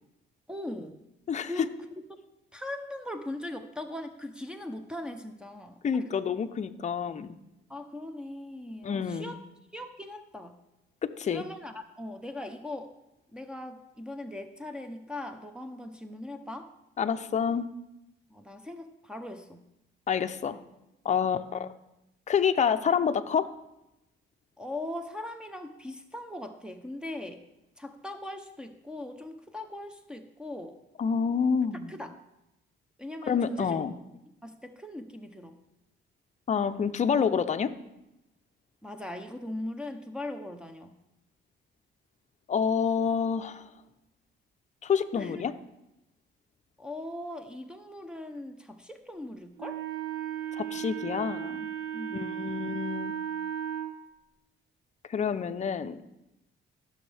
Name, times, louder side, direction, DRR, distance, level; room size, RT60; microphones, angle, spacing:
voice 1, 0.5-1.0 1.5-1.7 2.5-6.1 7.7-9.4 9.7-10.6 11.3-12.9 13.3-16.7 18.3-19.6 24.6-27.4 27.8-30.8 31.9-32.1 33.0-33.8 34.4-35.6 38.8-41.0 45.2-45.4 46.8-49.8 51.9-52.4, left 1 dB, 5° right, 3 dB, 0.7 m, -40 dB
voice 2, 5.8-7.4 8.8-9.4 11.0-11.4 17.0-17.7 20.1-20.6 21.0-21.7 22.3-23.5 31.0-31.9 33.3-33.9 36.5-37.7 42.5-43.7 44.8-45.5 50.6-51.7 52.1-53.1 55.1-56.0, left 6 dB, 35° left, 9 dB, 0.6 m, -28 dB
Wind instrument woodwind instrument, 49.6-53.9, right 10 dB, 80° right, 1.0 m, -35 dB
15.5 x 6.3 x 3.4 m, 0.90 s
cardioid pair, 90°, 20 cm